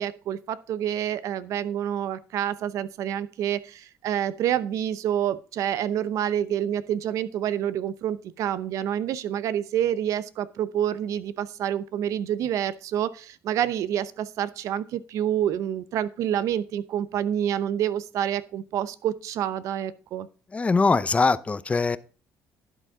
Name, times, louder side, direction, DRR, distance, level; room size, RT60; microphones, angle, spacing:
voice 1, 0.0-20.3, right 10 dB, 70° right, 15 dB, 0.8 m, -28 dB
voice 2, 20.5-22.0, left 4 dB, 20° left, 15 dB, 0.7 m, -22 dB
11.5 x 8.0 x 3.6 m, 0.37 s
supercardioid pair, 85°, 6 cm